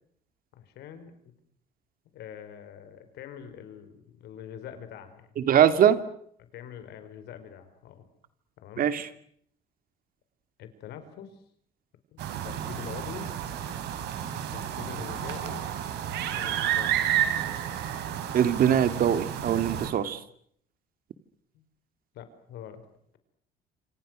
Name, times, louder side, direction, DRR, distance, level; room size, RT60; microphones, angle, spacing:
voice 1, 0.5-1.1 2.1-5.3 6.5-8.1 8.6-8.8 10.6-11.4 12.1-13.3 14.3-15.7 16.4-16.9 21.5-21.6 22.1-22.8, left 9 dB, 80° left, 10 dB, 4.9 m, -44 dB
voice 2, 5.4-6.0 8.8-9.1 18.3-20.2, right 9 dB, 60° right, 11 dB, 2.6 m, -22 dB
sound 1, 12.2-19.9, right 10 dB, 80° right, 4.5 m, -31 dB
28.0 x 27.0 x 6.4 m, 0.66 s
cardioid pair, 110°, 17 cm